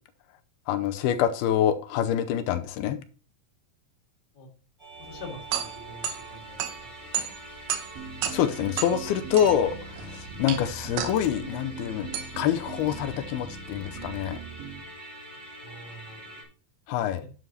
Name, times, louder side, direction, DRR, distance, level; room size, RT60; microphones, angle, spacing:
voice 1, 0.7-3.0 8.3-9.8 10.0-12.1 12.4-14.4 16.9-17.2, left 10 dB, 85° left, 10 dB, 2.6 m, -26 dB
Musical instrument, 4.8-16.4, right 1 dB, 10° right, 4.8 m, -45 dB
voice 2, 5.0-6.6 7.0-7.2 8.3-8.6 15.6-16.4, left 2 dB, 40° left, 1 dB, 0.7 m, -45 dB
sound 1, 5.0-14.2, right 9 dB, 85° right, 3.1 m, -35 dB
sound 2, 8.0-14.8, right 5 dB, 65° right, 3.4 m, -41 dB
11.0 x 9.2 x 2.9 m, 0.38 s
omnidirectional pair, 4.5 m